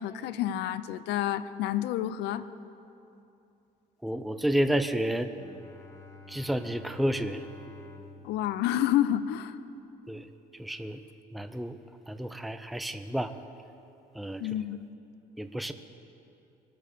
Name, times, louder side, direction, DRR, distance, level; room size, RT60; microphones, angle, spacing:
voice 1, 0.0-2.5 8.2-9.6 14.4-14.8, left 12 dB, 85° left, 14 dB, 0.7 m, -29 dB
voice 2, 4.0-5.3 6.3-7.4 10.1-10.3 10.6-11.0 11.3-11.8 12.1-13.3 14.1-14.4 15.4-15.7, right 1 dB, ahead, 9 dB, 0.6 m, -30 dB
Bowed string instrument, 5.3-9.7, left 3 dB, 15° left, 1.3 m, -50 dB
23.5 x 8.6 x 6.8 m, 2.7 s
cardioid pair, 110°, 17 cm